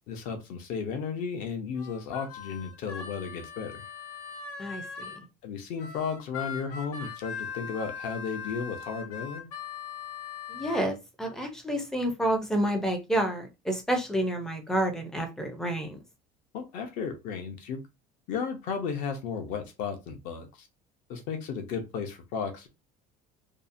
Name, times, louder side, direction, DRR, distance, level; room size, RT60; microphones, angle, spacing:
voice 1, 0.1-3.8 5.4-9.5 16.5-17.8 18.3-20.7 21.1-22.7, left 6 dB, 50° left, 0.6 m, -34 dB
Harmonica, 1.8-5.2 5.8-10.9, left 6 dB, 90° left, 0.7 m, -40 dB
voice 2, 4.6-5.1 10.5-16.0, right 1 dB, 5° left, 0.4 m, -29 dB
2.7 x 2.0 x 2.5 m
cardioid pair, 170°, 18 cm